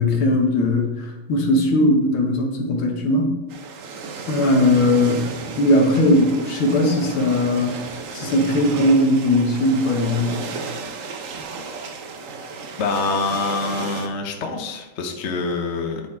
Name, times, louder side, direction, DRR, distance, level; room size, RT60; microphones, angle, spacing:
voice 1, 0.0-3.3 4.3-5.2 5.6-7.8 8.1-10.4, left 1 dB, 75° left, 2 dB, 1.9 m, -19 dB
sound 1, 3.5-14.1, right 4 dB, 65° right, 0.8 m, -33 dB
voice 2, 12.8-16.0, left 4 dB, 50° left, 3 dB, 0.9 m, -25 dB
9.7 x 4.1 x 4.3 m, 1.0 s
omnidirectional pair, 2.3 m